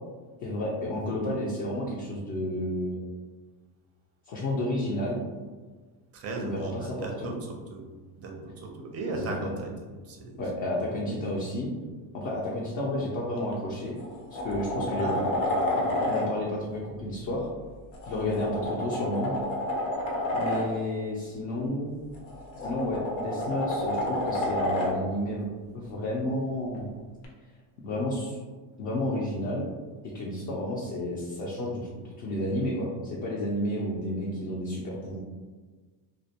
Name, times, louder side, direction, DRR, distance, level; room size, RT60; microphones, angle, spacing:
voice 1, 0.4-3.0 4.3-5.2 6.4-7.3 9.1-9.5 10.4-11.7 12.1-14.0 14.3-17.5 18.1-19.4 20.3-21.9 22.6-25.5 25.7-26.9 27.8-28.4 28.8-29.7 30.0-35.2, left 1 dB, 40° left, -5 dB, 0.5 m, -31 dB
voice 2, 6.1-7.8 8.2-9.7 10.0-10.4 15.0-15.2 18.3-18.5, right 3 dB, 30° right, 1 dB, 0.4 m, -37 dB
sound 1, 13.4-13.5 14.0-16.3 17.9-20.7 22.1-25.0 27.2-27.3, left 1 dB, 85° left, 0.8 m, -29 dB
2.3 x 2.1 x 2.7 m, 1.4 s
cardioid pair, 120°, 49 cm